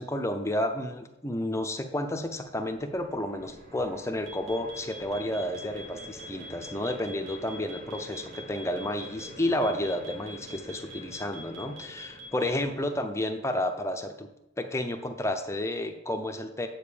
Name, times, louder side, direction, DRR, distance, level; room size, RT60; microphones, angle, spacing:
voice 1, 0.0-14.3 14.6-16.7, left 1 dB, 15° left, 6 dB, 0.6 m, -31 dB
sound 1, 2.1-13.4, right 2 dB, 45° right, 1.1 m, -48 dB
sound 2, 4.3-12.6, equal, 80° right, 2.2 m, -44 dB
7.9 x 5.2 x 6.7 m, 0.90 s
head